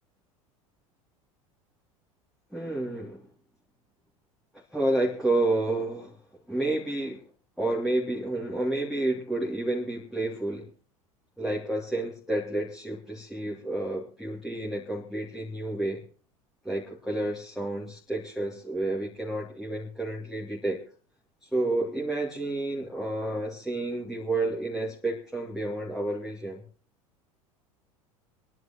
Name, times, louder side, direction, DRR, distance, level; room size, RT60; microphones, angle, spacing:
voice 1, 2.5-3.2 4.7-6.2 6.5-7.2 7.6-10.7 11.4-16.0 16.6-20.8 21.5-26.6, right 2 dB, ahead, -2 dB, 2.8 m, -30 dB
26.5 x 11.0 x 3.0 m, 0.38 s
figure-of-eight pair, 80°, 18 cm